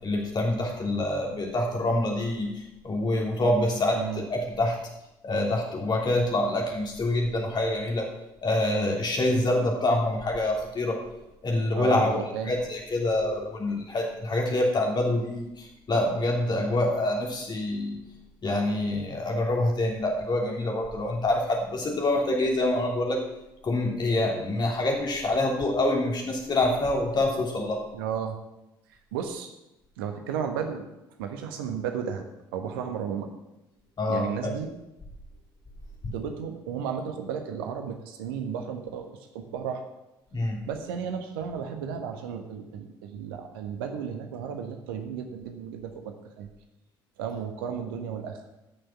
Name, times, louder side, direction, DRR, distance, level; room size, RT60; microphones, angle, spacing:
voice 1, 0.0-4.0 4.3-4.8 5.2-8.1 8.4-11.0 11.4-18.0 18.4-23.2 23.6-27.8 34.0-34.5 40.3-40.6, left 1 dB, 35° left, 0 dB, 3.3 m, -26 dB
voice 2, 11.7-12.6 27.9-28.3 29.1-29.5 30.0-30.9 31.2-32.2 32.5-33.3 34.1-34.7 36.1-39.8 40.7-46.5 47.2-48.4, right 7 dB, 65° right, 6 dB, 1.3 m, -33 dB
14.5 x 6.5 x 6.0 m, 0.93 s
figure-of-eight pair, 50°, 13 cm